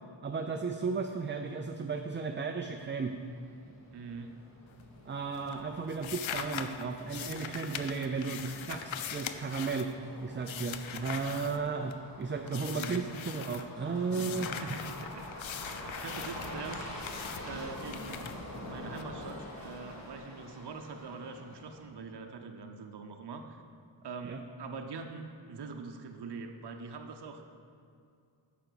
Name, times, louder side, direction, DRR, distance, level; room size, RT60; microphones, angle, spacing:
voice 1, 0.2-3.2 5.1-9.9 10.2-14.5 24.2-24.4, right 4 dB, 25° right, 5 dB, 0.3 m, -34 dB
sound 1, 2.6-21.9, left 1 dB, 35° left, 1.7 m, -46 dB
voice 2, 3.9-4.4 12.5-13.1 14.1-15.3 15.5-17.1 17.4-18.3 18.6-23.6 24.0-27.4, right 4 dB, 55° right, 4 dB, 0.7 m, -43 dB
sound 2, 4.7-5.1 5.4-12.1 12.5-13.7 14.1-19.0, left 8 dB, 80° left, 0.6 m, -42 dB
10.5 x 5.1 x 6.8 m, 2.4 s
wide cardioid pair, 140°, 47 cm